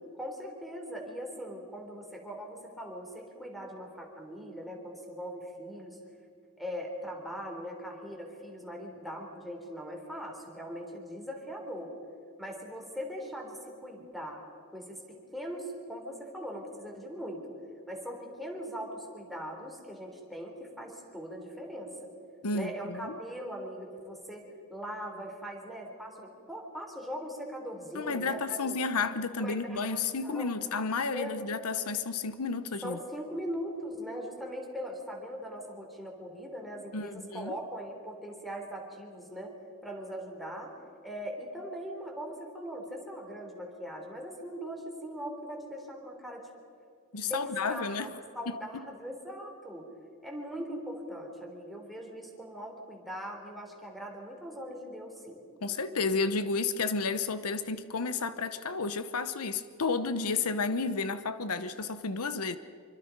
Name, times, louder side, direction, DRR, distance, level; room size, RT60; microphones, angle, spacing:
voice 1, 0.2-6.0 6.6-11.9 12.4-14.4 14.7-17.4 17.9-22.1 22.5-28.8 29.4-30.5 31.1-31.4 32.8-39.5 39.8-40.7 41.0-46.5 47.2-49.9 50.2-55.4, equal, ahead, 2 dB, 3.7 m, -40 dB
voice 2, 22.4-23.2 27.9-33.0 36.9-37.6 47.1-48.1 55.6-62.6, left 4 dB, 80° left, 12 dB, 0.9 m, -32 dB
26.0 x 24.5 x 5.3 m, 2.6 s
head